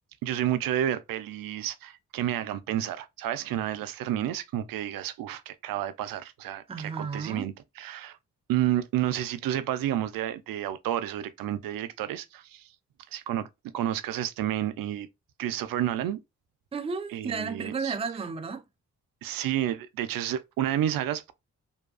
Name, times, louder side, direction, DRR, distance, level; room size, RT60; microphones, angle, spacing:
voice 1, 0.2-7.5 7.8-8.2 8.5-12.7 13.1-13.5 13.7-15.1 15.4-16.2 17.1-17.9 19.2-21.3, right 12 dB, 80° right, 0.5 m, -30 dB
voice 2, 6.7-7.5 16.7-18.6, right 5 dB, 15° right, 0.4 m, -33 dB
2.7 x 2.2 x 2.3 m
supercardioid pair, 50°, 34 cm